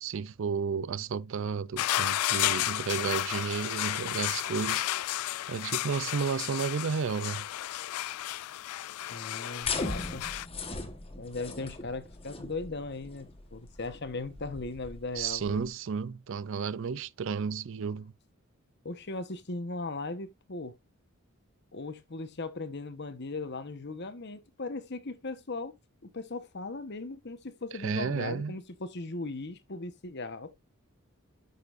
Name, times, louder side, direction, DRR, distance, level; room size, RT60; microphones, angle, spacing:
voice 1, 0.0-4.8 5.5-7.4 15.2-18.1 27.8-28.6, right 6 dB, 60° right, 0.4 m, -32 dB
sound 1, 1.8-10.5, left 14 dB, 90° left, 0.3 m, -32 dB
voice 2, 9.1-10.3 11.2-15.7 18.8-20.8 21.7-25.7 26.1-30.6, left 3 dB, 50° left, 1.1 m, -38 dB
sound 2, 9.6-15.7, left 3 dB, 25° left, 1.3 m, -39 dB
9.6 x 6.8 x 2.5 m
head